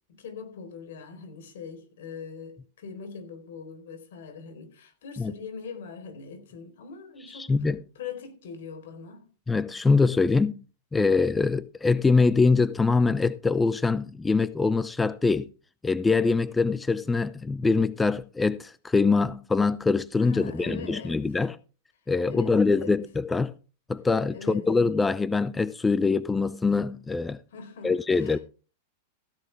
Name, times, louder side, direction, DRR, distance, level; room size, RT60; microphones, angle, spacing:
voice 1, 0.1-7.5 7.9-9.3 20.2-21.2 22.2-23.0 24.3-24.7 27.5-28.4, left 5 dB, 75° left, 4.2 m, -41 dB
voice 2, 7.3-7.8 9.5-10.6 10.9-15.5 15.8-21.6 22.1-23.5 23.9-27.4 27.8-28.4, left 4 dB, 10° left, 0.6 m, -24 dB
15.5 x 11.0 x 3.5 m
hypercardioid pair, 115°, 0 cm